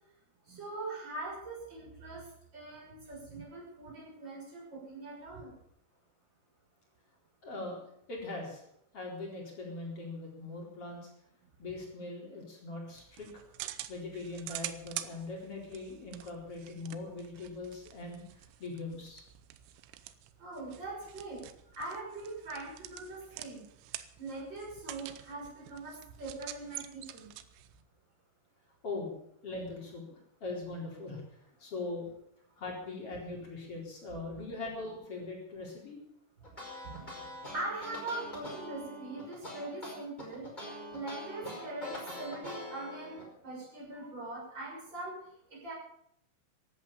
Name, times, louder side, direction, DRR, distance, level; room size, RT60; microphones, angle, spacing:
voice 1, 0.5-2.2 2.5-5.5 20.4-21.4 21.7-23.6 24.2-27.3 36.8-37.1 37.5-45.2 45.5-45.7, right 2 dB, 20° right, -3 dB, 6.8 m, -42 dB
voice 2, 7.4-7.8 8.1-8.6 8.9-11.1 11.6-13.3 13.9-19.2 28.8-29.2 29.4-31.2 31.6-32.1 32.6-36.0 36.8-36.9 37.3-37.4, left 3 dB, 30° left, -1 dB, 4.6 m, -41 dB
sound 1, 13.0-27.8, right 14 dB, 80° right, 3.1 m, -47 dB
sound 2, 36.4-43.2, left 1 dB, 10° left, 4.9 m, -43 dB
16.0 x 11.5 x 7.0 m, 0.71 s
omnidirectional pair, 5.8 m